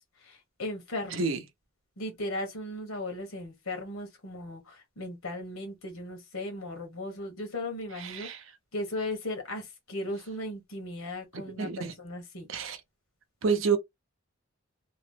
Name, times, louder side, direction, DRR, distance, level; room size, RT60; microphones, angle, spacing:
voice 1, 0.2-1.3 2.0-8.3 8.7-12.5, left 1 dB, 85° left, 1.2 m, -37 dB
voice 2, 1.1-1.4 8.0-8.4 11.6-11.9 12.5-12.8 13.4-13.8, right 5 dB, 70° right, 0.6 m, -28 dB
3.0 x 2.0 x 3.2 m
head